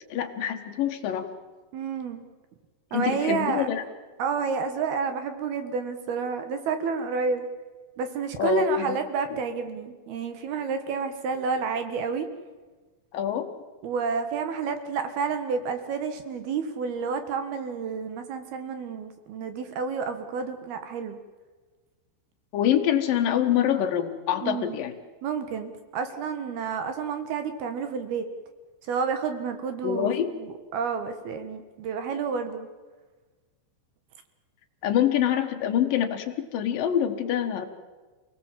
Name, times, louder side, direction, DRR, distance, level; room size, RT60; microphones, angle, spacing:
voice 1, 0.1-1.3 2.9-3.8 8.4-9.0 13.1-13.5 22.5-24.9 29.8-30.3 34.8-37.7, left 10 dB, 60° left, 5 dB, 2.5 m, -25 dB
voice 2, 1.7-2.2 2.9-3.7 4.2-7.5 8.0-12.3 13.8-21.2 24.4-24.8 25.2-28.2 28.9-32.7, right 5 dB, 65° right, 8 dB, 2.8 m, -30 dB
28.5 x 18.5 x 7.5 m, 1.3 s
omnidirectional pair, 5.7 m